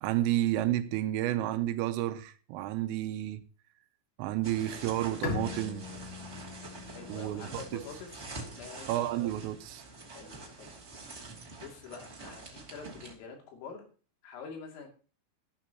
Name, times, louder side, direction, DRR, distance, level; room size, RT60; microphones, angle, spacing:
voice 1, 0.0-3.5 4.2-5.9 7.1-7.6 8.9-9.8, right 14 dB, 90° right, 3.5 m, -31 dB
sound 1, 4.4-13.1, right 3 dB, 20° right, 1.8 m, -46 dB
Bowed string instrument, 5.2-8.8, left 6 dB, 65° left, 2.3 m, -41 dB
voice 2, 6.9-9.0 10.1-10.7 11.6-13.9 14.2-14.9, left 5 dB, 80° left, 5.3 m, -46 dB
14.5 x 12.5 x 3.0 m
omnidirectional pair, 5.8 m